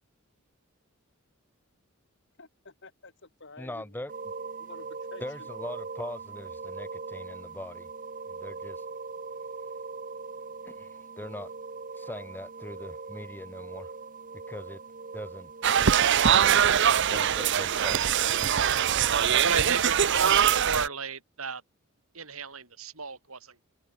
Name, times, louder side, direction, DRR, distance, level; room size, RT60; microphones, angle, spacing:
voice 1, 2.4-3.9 4.6-5.5, left 3 dB, 55° left, 3.4 m, -50 dB
voice 2, 3.6-4.1 5.2-7.9 8.3-8.8 10.6-11.5 11.9-13.9 14.5-14.8 15.1-15.5 16.2-16.7 17.1-18.1, left 1 dB, 10° left, 1.2 m, -41 dB
sound 1, 4.1-20.7, right 4 dB, 40° right, 1.2 m, -41 dB
sound 2, 15.6-20.9, right 9 dB, 55° right, 0.7 m, -23 dB
voice 3, 19.4-21.6 22.1-23.6, right 5 dB, 80° right, 6.7 m, -33 dB
head